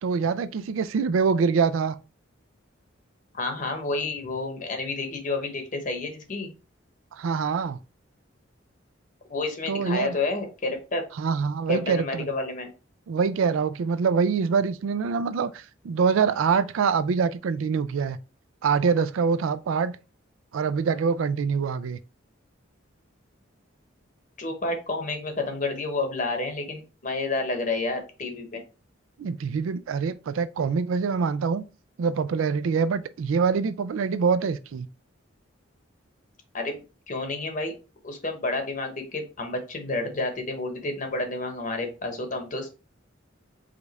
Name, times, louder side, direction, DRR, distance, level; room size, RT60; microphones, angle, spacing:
voice 1, 0.0-2.0 7.1-7.8 9.7-10.2 11.2-12.3 13.1-18.2 18.6-20.0 20.5-22.0 29.2-31.6 32.0-34.9, right 5 dB, 85° right, 0.4 m, -25 dB
voice 2, 3.3-6.5 9.3-11.0 11.7-12.7 24.4-28.6 36.5-36.8 37.1-37.7 38.0-42.7, left 2 dB, 40° left, 1.0 m, -30 dB
5.0 x 2.4 x 4.1 m
head